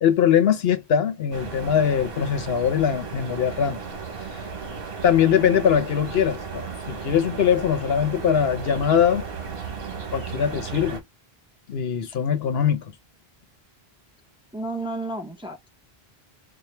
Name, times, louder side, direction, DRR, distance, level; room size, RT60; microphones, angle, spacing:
voice 1, 0.0-3.8 5.0-9.3 10.1-11.0 11.7-12.8, left 8 dB, 75° left, 1.0 m, -21 dB
sound 1, 1.3-11.0, right 5 dB, 65° right, 1.3 m, -35 dB
voice 2, 14.5-15.7, right 2 dB, 5° right, 0.7 m, -32 dB
4.4 x 2.2 x 3.2 m
omnidirectional pair, 1.0 m